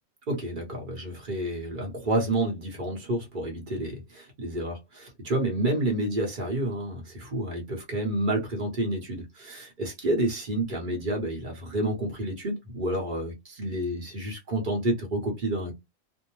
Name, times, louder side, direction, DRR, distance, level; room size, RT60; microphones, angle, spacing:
voice 1, 0.3-15.7, right 1 dB, 40° right, 0.9 m, -29 dB
2.7 x 2.0 x 2.9 m
omnidirectional pair, 1.4 m